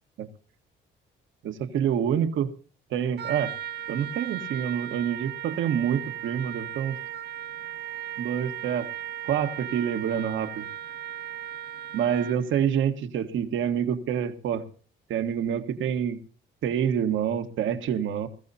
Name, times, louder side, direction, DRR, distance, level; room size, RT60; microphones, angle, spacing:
voice 1, 1.4-2.5 2.9-3.5 3.9-7.0 8.2-8.9 9.2-10.6 11.9-14.6 15.1-16.2 16.6-18.3, right 8 dB, 80° right, 8 dB, 1.4 m, -27 dB
Trumpet, 3.2-12.5, right 10 dB, 55° right, 1.0 m, -37 dB
22.0 x 14.0 x 2.7 m, 0.41 s
cardioid pair, 90°, 20 cm